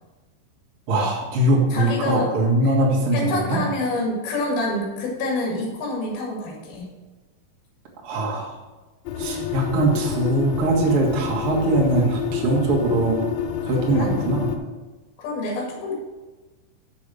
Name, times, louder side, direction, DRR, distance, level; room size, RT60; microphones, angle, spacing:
voice 1, 0.9-3.6 8.0-8.5 9.2-13.2 13.6-14.5, right 2 dB, 80° right, -3 dB, 1.2 m, -21 dB
voice 2, 1.7-2.3 2.6-2.7 3.1-6.9 13.9-14.1 15.2-16.0, left 2 dB, 60° left, -2 dB, 3.5 m, -27 dB
sound 1, 9.1-14.6, left 7 dB, 85° left, 3.1 m, -28 dB
7.0 x 6.7 x 6.3 m, 1.2 s
omnidirectional pair, 5.5 m